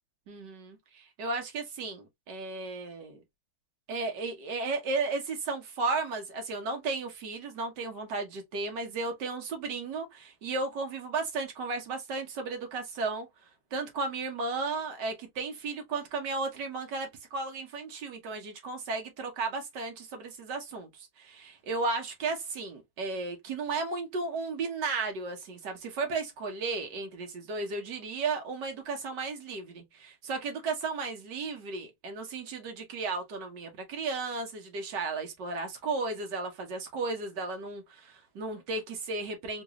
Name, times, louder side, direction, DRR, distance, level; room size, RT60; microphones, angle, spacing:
voice 1, 0.3-3.2 3.9-13.3 13.7-39.6, right 3 dB, 70° right, 1.6 m, -34 dB
3.8 x 2.4 x 3.0 m
omnidirectional pair, 2.0 m